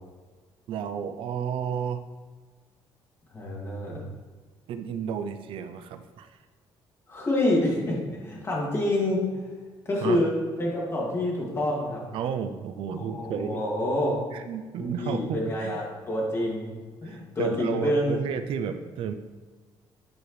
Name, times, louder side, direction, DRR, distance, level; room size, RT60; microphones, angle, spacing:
voice 1, 0.7-2.0 4.7-6.4 10.0-10.2 12.1-13.6 14.3-15.8 17.0-19.1, right 7 dB, 70° right, 9 dB, 0.4 m, -32 dB
voice 2, 3.3-4.0 7.1-9.5 9.9-10.3 10.6-12.0 12.9-14.2 14.8-18.2, left 1 dB, 30° left, -3 dB, 2.2 m, -27 dB
9.1 x 4.8 x 3.2 m, 1.4 s
cardioid pair, 115°, 9 cm